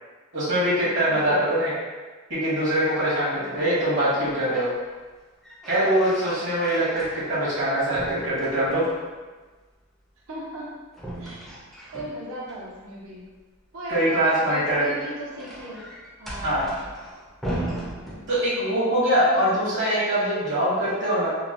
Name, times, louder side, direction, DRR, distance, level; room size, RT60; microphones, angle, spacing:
voice 1, 0.3-1.7 2.3-4.7 5.7-8.8 13.9-14.8 16.4-16.7 18.3-21.3, right 1 dB, 55° right, -9 dB, 1.1 m, -23 dB
voice 2, 1.1-1.5 3.3-3.8 10.3-10.7 11.2-11.5 11.9-13.3 13.7-15.9 16.2-16.9 19.3-19.7, equal, 75° right, -5 dB, 0.8 m, -37 dB
sound 1, 4.2-4.8 5.2-7.6 7.9-9.1 10.9-12.6 14.6-18.7, right 1 dB, ahead, 0.5 m, -37 dB
2.9 x 2.2 x 2.5 m, 1.3 s
head